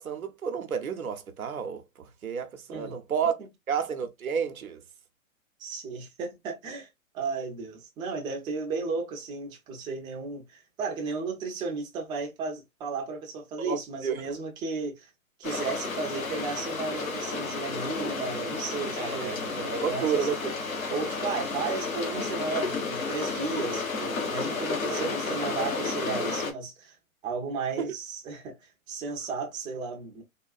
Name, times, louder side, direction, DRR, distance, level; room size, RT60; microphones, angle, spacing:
voice 1, 0.0-3.3 3.7-4.8 13.6-14.3 19.0-20.6 24.9-25.1 27.8-27.9, right 7 dB, 90° right, 0.8 m, -31 dB
voice 2, 5.6-6.9 7.1-15.1 15.4-20.3 20.9-27.0 27.2-28.6 28.9-30.2, right 4 dB, 10° right, 0.4 m, -34 dB
sound 1, 15.4-26.5, left 4 dB, 75° left, 1.2 m, -32 dB
3.5 x 2.3 x 2.3 m
hypercardioid pair, 115°, 41 cm